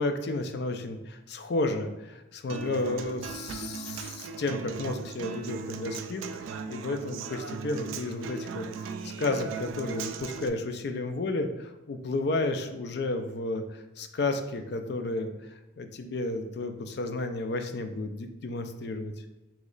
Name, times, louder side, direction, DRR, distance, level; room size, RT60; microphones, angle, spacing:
voice 1, 0.0-6.2 6.7-8.9 9.2-15.3 15.8-19.1, left 2 dB, 55° left, 7 dB, 0.4 m, -32 dB
Human voice / Acoustic guitar, 2.5-10.5, right 5 dB, 90° right, 0.3 m, -38 dB
3.0 x 3.0 x 3.8 m, 1.1 s
head